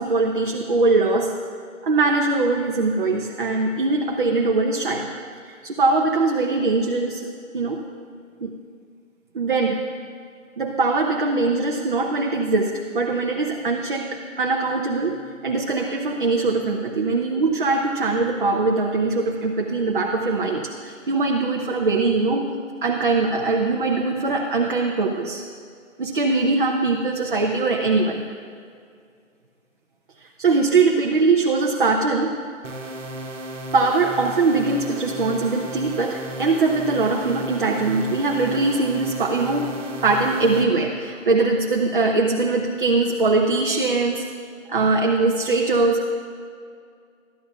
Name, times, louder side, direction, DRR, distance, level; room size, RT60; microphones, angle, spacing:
voice 1, 0.0-1.3 1.8-5.1 5.5-7.2 7.5-7.8 8.4-8.5 9.3-9.8 10.6-15.2 15.4-22.5 22.8-25.4 26.0-28.2 30.4-32.4 33.7-39.8 40.0-44.3 44.7-46.1, right 3 dB, 40° right, 1 dB, 0.6 m, -21 dB
sound 1, 32.6-40.6, right 1 dB, 65° right, 1.2 m, -34 dB
13.0 x 10.0 x 2.3 m, 2.3 s
hypercardioid pair, 160°, 40 cm